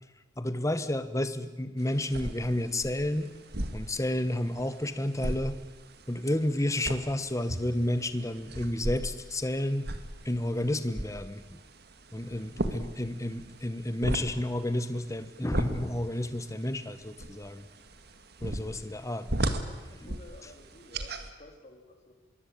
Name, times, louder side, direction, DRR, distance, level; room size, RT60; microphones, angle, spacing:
voice 1, 0.4-3.3 3.7-5.6 6.1-9.9 10.2-11.4 12.1-17.6 18.4-19.5, left 1 dB, 15° left, 11 dB, 1.4 m, -31 dB
sound 1, 1.8-21.3, right 1 dB, 50° right, 2.0 m, -38 dB
voice 2, 19.6-22.1, left 1 dB, 35° left, 2 dB, 3.8 m, -53 dB
25.5 x 22.5 x 8.8 m, 1.2 s
head